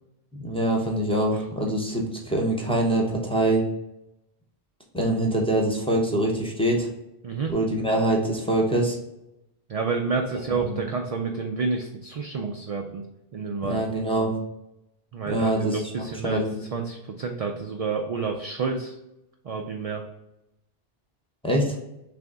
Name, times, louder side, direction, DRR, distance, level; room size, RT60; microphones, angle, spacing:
voice 1, 0.3-3.6 4.9-6.9 7.5-9.0 10.5-10.7 13.6-14.3 15.3-15.8 16.2-16.5 21.4-21.8, right 1 dB, 5° left, -2 dB, 0.7 m, -24 dB
voice 2, 9.7-13.0 13.3-13.8 15.1-16.4 16.7-19.0 19.4-20.0, right 4 dB, 60° right, 2 dB, 0.4 m, -29 dB
3.5 x 3.4 x 3.8 m, 0.90 s
omnidirectional pair, 1.1 m